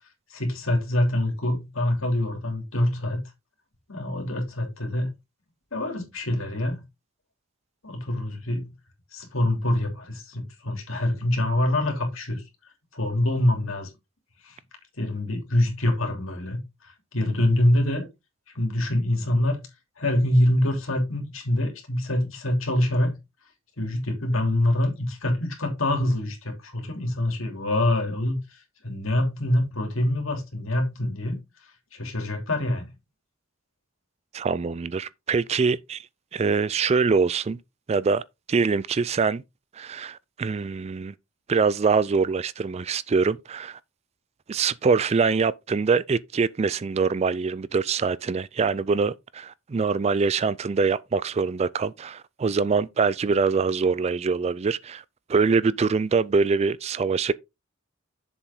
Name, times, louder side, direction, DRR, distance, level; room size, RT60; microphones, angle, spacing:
voice 1, 0.3-3.2 3.9-5.1 5.7-6.8 7.8-8.7 9.1-12.4 12.9-13.9 14.4-14.5 15.0-16.6 17.1-18.1 18.5-19.6 20.0-23.1 23.8-28.4 28.8-31.4 31.9-32.9, left 1 dB, 70° left, 3.1 m, -25 dB
voice 2, 34.3-36.1 36.3-37.6 37.9-38.2 38.5-39.4 39.8-41.1 41.5-43.8 44.5-55.0 55.3-57.3, right 5 dB, 30° right, 0.3 m, -24 dB
7.2 x 7.0 x 3.6 m
head